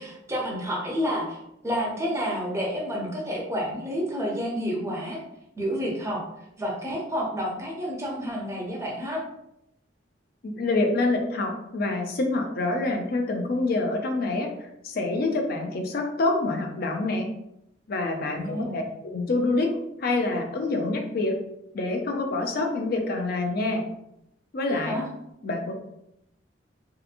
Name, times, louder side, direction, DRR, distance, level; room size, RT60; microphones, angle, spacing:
voice 1, 0.0-5.2 5.6-6.2 6.6-9.2 18.3-18.8 24.7-25.0, equal, 15° right, -2 dB, 0.6 m, -30 dB
voice 2, 10.4-14.5 14.8-17.3 17.9-21.3 21.7-23.8 24.5-25.0 25.4-25.7, left 2 dB, 55° left, 3 dB, 0.5 m, -26 dB
2.8 x 2.5 x 2.5 m, 0.81 s
head